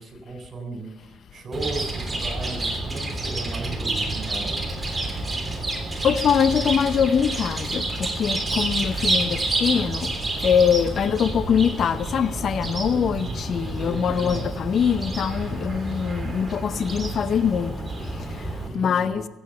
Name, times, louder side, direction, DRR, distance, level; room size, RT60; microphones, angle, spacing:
voice 1, 0.0-4.7 12.8-13.4 13.7-14.5 18.6-19.2, right 3 dB, 45° right, 3.9 m, -36 dB
Chirp tweet, 1.5-18.7, right 2 dB, 20° right, 3.3 m, -29 dB
voice 2, 6.0-10.1 10.4-18.5 18.7-19.3, left 7 dB, 55° left, 0.6 m, -23 dB
15.5 x 7.9 x 6.7 m
cardioid pair, 80°, 0 cm